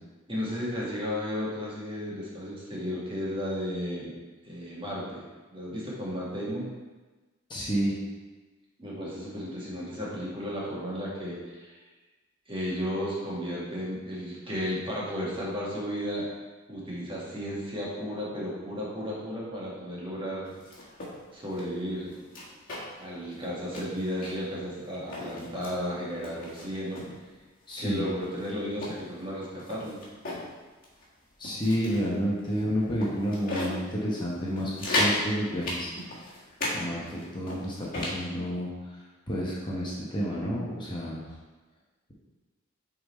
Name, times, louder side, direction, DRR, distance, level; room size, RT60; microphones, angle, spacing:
voice 1, 0.3-4.1 4.4-5.2 5.5-6.7 8.8-11.7 12.5-16.3 16.7-20.5 21.3-22.1 23.0-27.0 27.8-30.0, equal, 25° right, -6 dB, 1.6 m, -34 dB
voice 2, 7.5-8.0 27.7-28.1 31.4-36.2 36.7-38.7 39.3-41.3, equal, 25° left, -6 dB, 1.0 m, -30 dB
sound 1, 20.4-21.1 21.5-21.6 22.1-23.0 23.3-23.4 23.7-24.5 24.9-25.8 26.2-27.1 27.7-27.8 28.2-30.5 30.8-31.0 31.4-32.1 32.5-32.6 33.0-33.8 34.2-34.3 34.6-35.2 35.6-36.8 37.1-38.2, left 1 dB, 45° left, 1.6 m, -34 dB
6.5 x 3.8 x 4.2 m, 1.3 s
head